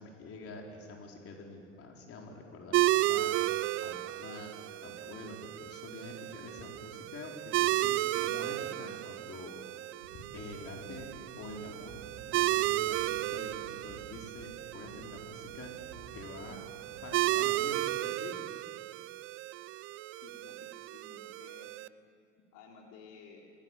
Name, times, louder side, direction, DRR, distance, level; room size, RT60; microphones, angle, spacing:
voice 1, 0.0-4.5 4.8-9.5 10.1-12.0 12.3-15.7 16.1-16.6 17.0-18.5, left 3 dB, 35° left, 1 dB, 4.6 m, -46 dB
sound 1, 2.7-21.9, right 16 dB, 35° right, 0.6 m, -34 dB
sound 2, 10.0-17.7, right 4 dB, 85° right, 3.9 m, -54 dB
voice 2, 20.2-21.7 22.5-23.4, left 5 dB, 50° left, -1 dB, 4.3 m, -54 dB
28.0 x 22.0 x 7.7 m, 2.4 s
hypercardioid pair, 85°, 38 cm